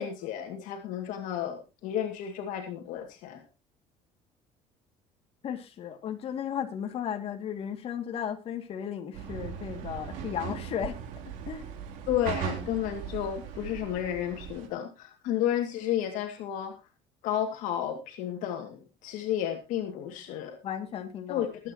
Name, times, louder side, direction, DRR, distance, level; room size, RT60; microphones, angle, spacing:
voice 1, 0.0-3.4 12.1-16.8 17.2-20.6 21.3-21.7, left 10 dB, 75° left, 4 dB, 2.3 m, -32 dB
voice 2, 5.4-11.0 11.5-11.7 20.6-21.5, left 8 dB, 45° left, 5 dB, 2.4 m, -35 dB
sound 1, 9.1-14.7, right 8 dB, 80° right, 3.3 m, -38 dB
22.5 x 9.0 x 3.0 m, 0.29 s
cardioid pair, 135°, 13 cm